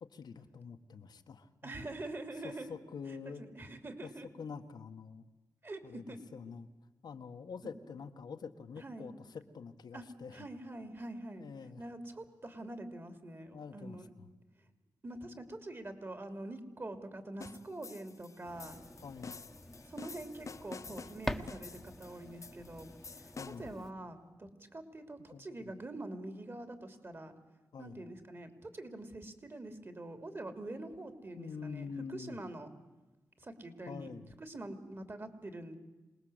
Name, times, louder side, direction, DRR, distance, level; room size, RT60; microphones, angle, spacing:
voice 1, 0.0-1.9 2.4-3.4 4.0-4.1 4.4-5.3 5.8-6.7 7.0-10.5 11.4-11.8 13.5-14.3 19.0-19.4 23.4-23.7 25.3-25.7 27.7-28.0 31.4-32.4 33.9-34.4, left 5 dB, 85° left, 6 dB, 1.6 m, -46 dB
voice 2, 1.6-2.7 3.4-4.3 5.6-6.2 8.8-9.1 9.9-10.0 10.3-11.5 11.8-14.1 15.0-18.8 19.9-22.9 23.2-23.3 23.6-27.3 27.8-32.7 33.4-34.1 34.4-35.7, right 2 dB, 35° right, 8 dB, 3.1 m, -45 dB
sound 1, 17.4-23.8, left 5 dB, 50° left, 0.8 m, -49 dB
sound 2, 18.4-23.9, left 1 dB, 5° left, 1.4 m, -45 dB
26.5 x 19.5 x 8.1 m, 1.1 s
wide cardioid pair, 85°, 7 cm